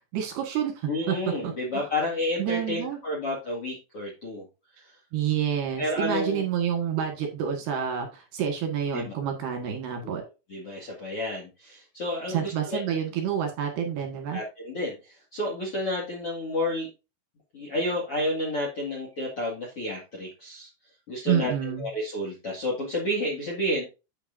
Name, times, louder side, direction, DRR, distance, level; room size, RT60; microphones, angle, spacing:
voice 1, 0.1-1.1 1.4-1.9 2.4-3.0 5.1-10.2 12.3-14.4 21.3-21.9, right 8 dB, 65° right, 4 dB, 3.3 m, -28 dB
voice 2, 0.9-4.5 4.8-4.9 5.8-6.4 8.9-9.1 10.5-12.8 14.3-16.9 17.5-20.7 21.1-21.5 21.8-23.8, left 1 dB, 50° left, -2 dB, 1.8 m, -30 dB
8.9 x 7.9 x 2.6 m, 0.29 s
omnidirectional pair, 5.8 m